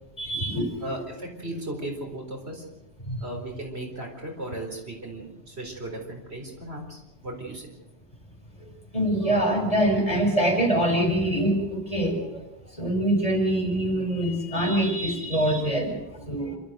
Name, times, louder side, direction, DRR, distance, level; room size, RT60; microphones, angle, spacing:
voice 1, 0.2-0.8 3.1-3.2 8.9-12.4 12.8-16.6, right 1 dB, 35° left, 1 dB, 4.9 m, -24 dB
voice 2, 0.8-2.6 3.2-7.6, right 1 dB, 80° right, 1 dB, 4.6 m, -36 dB
27.0 x 13.5 x 8.0 m, 1.0 s
omnidirectional pair, 1.1 m